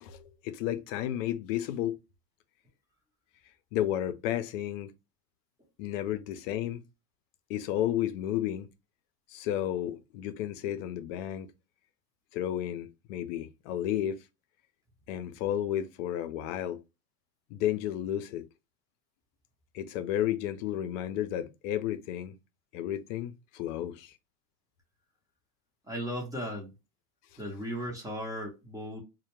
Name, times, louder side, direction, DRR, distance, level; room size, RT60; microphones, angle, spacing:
voice 1, 0.0-2.0 3.7-4.9 5.8-6.8 7.5-8.7 9.3-11.5 12.3-14.2 15.1-16.8 17.5-18.4 19.7-22.3 22.7-24.1, left 12 dB, 60° left, 0.6 m, -32 dB
voice 2, 25.9-26.7 27.4-29.0, equal, 10° right, 0.6 m, -36 dB
2.2 x 2.1 x 2.9 m
supercardioid pair, 120°, 43 cm